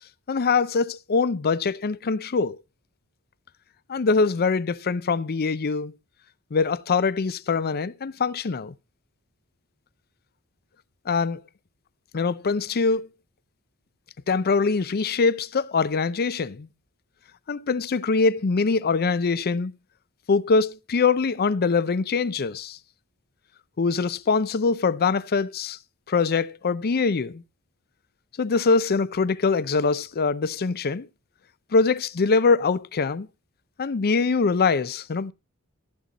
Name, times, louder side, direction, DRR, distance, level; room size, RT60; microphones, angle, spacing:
voice 1, 0.3-2.6 3.9-5.9 6.5-8.7 11.1-11.4 12.1-13.1 14.3-16.7 17.5-19.7 20.3-22.8 23.8-25.8 26.1-27.4 28.4-31.1 31.7-33.3 33.8-35.3, left 4 dB, 45° left, 0.5 m, -23 dB
15.0 x 7.5 x 4.0 m
head